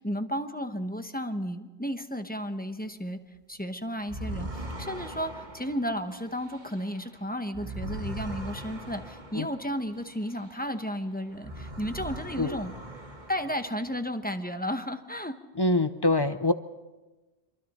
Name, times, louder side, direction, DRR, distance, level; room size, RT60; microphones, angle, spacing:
voice 1, 0.0-3.2 3.5-12.7 13.3-15.4, equal, 10° left, 7 dB, 0.9 m, -33 dB
sound 1, 4.0-10.9 11.3-14.0, right 1 dB, 45° right, 2.0 m, -40 dB
voice 2, 15.6-16.5, left 2 dB, 30° left, 11 dB, 0.5 m, -24 dB
26.5 x 23.5 x 4.2 m, 1.2 s
omnidirectional pair, 1.1 m